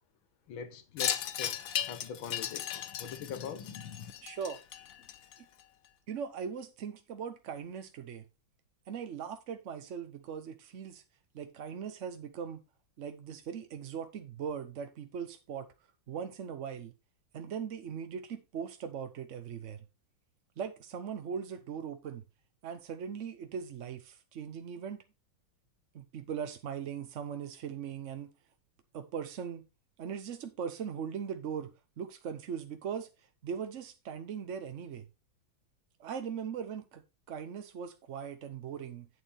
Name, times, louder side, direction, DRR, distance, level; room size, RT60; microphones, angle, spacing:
voice 1, 0.5-4.1, left 7 dB, 85° left, 1.9 m, -43 dB
Wind chime, 1.0-5.6, left 10 dB, 60° left, 1.0 m, -36 dB
voice 2, 4.2-4.6 6.1-8.2 8.9-11.0 11.3-12.6 13.0-15.7 16.1-16.9 17.3-19.8 20.6-22.2 22.6-25.0 25.9-28.3 28.9-29.6 30.0-31.7 32.0-33.1 33.4-35.1 36.0-39.1, right 7 dB, 60° right, 0.8 m, -40 dB
8.9 x 7.0 x 4.1 m
omnidirectional pair, 2.2 m